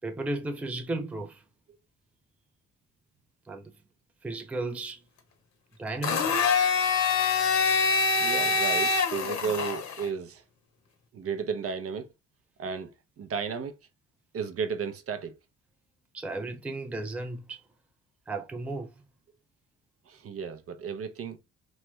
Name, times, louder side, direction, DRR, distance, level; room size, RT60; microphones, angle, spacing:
voice 1, 0.0-1.4 3.5-3.7 4.2-5.0 5.8-6.4 16.1-17.6 18.3-19.1, right 2 dB, 5° right, 0.4 m, -34 dB
Domestic sounds home sounds, 6.0-10.1, left 5 dB, 65° left, 0.8 m, -25 dB
voice 2, 8.2-10.4 11.1-12.1 12.6-12.9 13.2-13.8 14.3-15.4 20.1-21.4, right 6 dB, 50° right, 0.6 m, -33 dB
3.1 x 2.2 x 3.0 m
cardioid pair, 90°, 30 cm